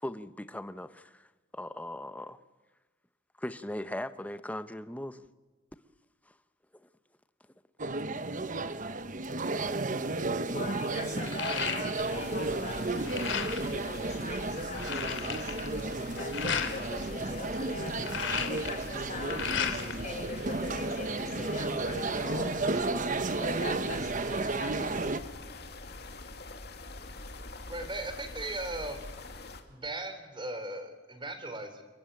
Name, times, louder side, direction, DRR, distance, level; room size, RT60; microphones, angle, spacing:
voice 1, 0.0-2.4 3.4-5.3 6.3-6.4 6.8-6.9, left 1 dB, 10° left, 0.9 m, -39 dB
sound 1, 7.8-25.2, right 2 dB, 45° right, 1.1 m, -33 dB
sound 2, 10.1-10.2 10.5-12.3 12.6-13.7 14.2-14.3 14.5-16.7 17.8-20.0 20.4-21.2, left 6 dB, 90° left, 2.9 m, -35 dB
voice 2, 10.4-15.5 16.2-18.1 18.4-22.8 23.4-24.9, left 2 dB, 40° left, 6.3 m, -42 dB
sound 3, 11.9-29.6, left 2 dB, 60° left, 2.6 m, -44 dB
voice 3, 27.7-29.1 29.7-31.8, right 2 dB, 25° right, 3.5 m, -38 dB
30.0 x 20.0 x 9.2 m
head